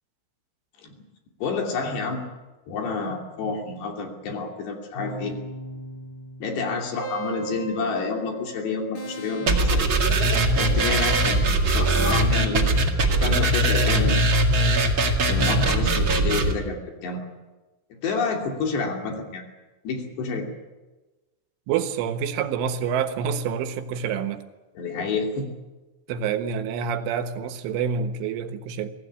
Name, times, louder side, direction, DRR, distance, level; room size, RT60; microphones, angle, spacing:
voice 1, 1.4-2.2 2.7-5.4 6.4-9.9 10.6-12.7 13.2-14.2 15.3-17.2 18.0-19.4 19.8-20.5 24.8-25.5, left 4 dB, 60° left, 2 dB, 4.8 m, -29 dB
sound 1, 3.7-4.2 4.9-10.0 10.9-11.8, right 2 dB, 40° left, 6.5 m, -38 dB
sound 2, 9.5-16.5, right 1 dB, 50° right, 1.4 m, -21 dB
voice 2, 21.7-24.4 26.1-28.9, right 7 dB, 75° right, 8 dB, 3.7 m, -27 dB
24.0 x 16.0 x 10.0 m, 1.2 s
omnidirectional pair, 5.7 m